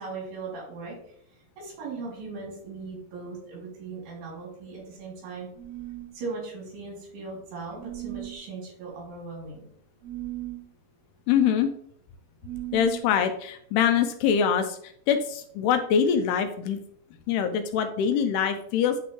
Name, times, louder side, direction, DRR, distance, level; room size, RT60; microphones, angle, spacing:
voice 1, 0.0-5.5 6.1-9.7, right 4 dB, 75° right, -4 dB, 4.8 m, -39 dB
sound 1, 5.5-6.2 7.7-8.4 10.0-10.6 12.4-13.1, right 16 dB, 50° right, 2.4 m, -37 dB
voice 2, 11.3-11.7 12.7-16.8 17.3-19.0, left 7 dB, 80° left, 8 dB, 2.5 m, -24 dB
10.0 x 3.9 x 3.1 m, 0.65 s
omnidirectional pair, 4.8 m